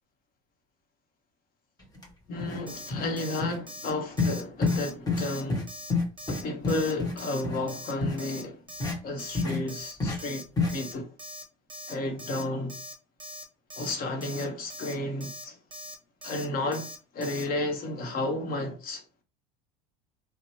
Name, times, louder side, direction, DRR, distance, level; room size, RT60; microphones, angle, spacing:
sound 1, 2.0-2.1 2.4-2.6 2.9-3.1 3.4-3.6 4.2-4.3 4.6-4.8 5.1-5.2 5.5-5.6 5.9-7.1 7.4-7.6 8.0-8.2 8.8-9.0 9.3-9.6 10.0-10.2 10.6-10.7, left 3 dB, 20° left, 1.2 m, -27 dB
voice 1, 2.3-5.7 6.3-8.6 9.0-10.4 10.7-11.1 11.9-12.8 13.8-15.6 16.2-19.0, left 2 dB, 45° left, 1.0 m, -32 dB
Alarm, 2.7-2.9 3.2-3.4 3.7-3.9 4.2-4.4 4.7-4.9 5.2-5.4 5.7-5.9 6.2-6.4 6.7-6.9 7.2-7.4 7.7-7.9 8.2-8.4 8.7-8.9 9.2-9.4 9.7-9.9 10.2-10.4 10.7-10.9 11.2-11.4 11.7-11.9 12.2-12.4 12.7-12.9 13.2-13.4 13.7-13.9 14.2-14.4 14.7-14.9 15.2-15.4 15.7-15.9 16.2-16.5 16.7-17.0 17.2-17.4, left 1 dB, 25° right, 0.8 m, -42 dB
2.8 x 2.0 x 2.9 m
hypercardioid pair, 75°, 21 cm